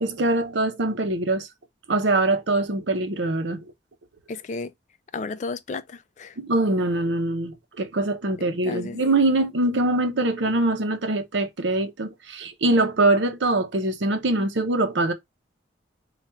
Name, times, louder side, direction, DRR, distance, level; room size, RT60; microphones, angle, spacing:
voice 1, 0.0-1.5 1.9-3.6 6.4-15.1, right 2 dB, 80° right, 0.7 m, -23 dB
voice 2, 4.3-4.7 5.1-6.4 8.6-9.0, left 3 dB, 40° left, 0.3 m, -33 dB
4.3 x 2.4 x 3.3 m
head